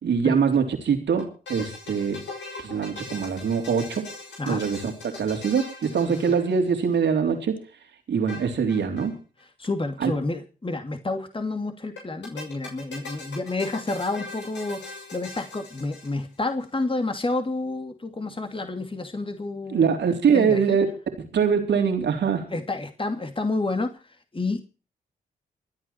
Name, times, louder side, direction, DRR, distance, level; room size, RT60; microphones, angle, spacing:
voice 1, 0.0-2.2 2.6-4.0 4.5-7.6 8.1-9.1 10.0-10.1 19.7-20.9 21.3-22.4, right 6 dB, 70° right, 4 dB, 3.7 m, -23 dB
sound 1, 1.2-7.0 8.3-9.1 9.4-9.5 9.6-9.7 12.0-16.5, left 3 dB, 75° left, 6.1 m, -41 dB
voice 2, 9.6-14.9 15.1-19.9 20.3-20.8 22.5-24.0 24.3-24.6, left 2 dB, 30° left, 6 dB, 2.6 m, -29 dB
26.5 x 9.0 x 4.5 m, 0.36 s
supercardioid pair, 40°, 19 cm